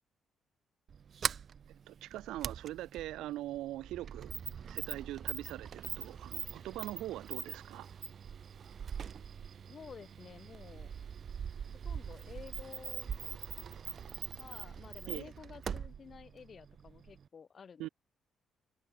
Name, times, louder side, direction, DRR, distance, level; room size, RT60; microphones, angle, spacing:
Sliding door, 0.9-17.3, right 7 dB, 50° right, 0.7 m, -42 dB
voice 1, 1.9-4.3 4.7-7.9 15.1-15.3 17.8-17.9, right 15 dB, 90° right, 4.6 m, -42 dB
voice 2, 9.7-10.9 11.8-13.6 14.3-17.9, left 6 dB, 45° left, 5.1 m, -52 dB
cardioid pair, 90°, 0 cm